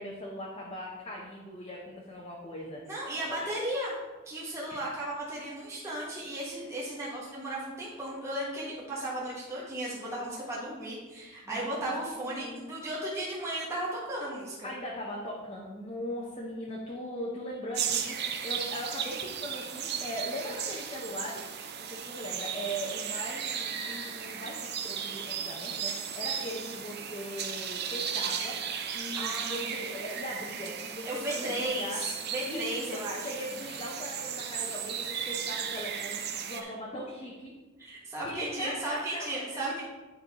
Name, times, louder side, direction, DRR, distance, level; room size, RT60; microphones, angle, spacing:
voice 1, 0.0-3.5 11.5-11.9 12.4-12.7 14.6-28.6 28.9-32.0 32.5-37.5 38.2-39.3 39.5-39.6, equal, 25° left, -4 dB, 0.8 m, -39 dB
voice 2, 2.8-4.0 4.2-14.7 29.1-29.9 31.0-33.4 36.6-36.7 37.8-39.8, right 1 dB, 15° right, -7 dB, 1.4 m, -35 dB
sound 1, 17.7-36.6, right 7 dB, 50° right, 0.6 m, -36 dB
9.5 x 5.3 x 3.0 m, 1.2 s
head